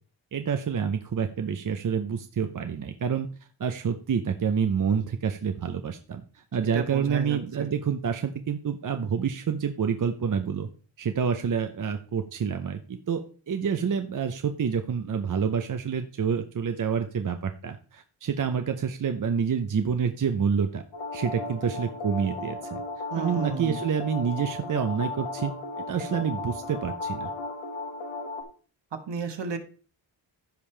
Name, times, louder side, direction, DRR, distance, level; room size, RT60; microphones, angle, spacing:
voice 1, 0.3-3.3 3.6-10.7 11.0-13.2 13.5-20.8 21.1-22.8 23.2-25.5 25.8-27.3, right 7 dB, 40° right, 7 dB, 0.7 m, -28 dB
voice 2, 6.7-7.7 23.1-23.8 29.1-29.6, right 5 dB, 60° right, 6 dB, 1.5 m, -32 dB
sound 1, 20.9-28.4, left 2 dB, 85° left, 2.0 m, -35 dB
15.0 x 5.4 x 3.3 m, 0.39 s
wide cardioid pair, 125°, 47 cm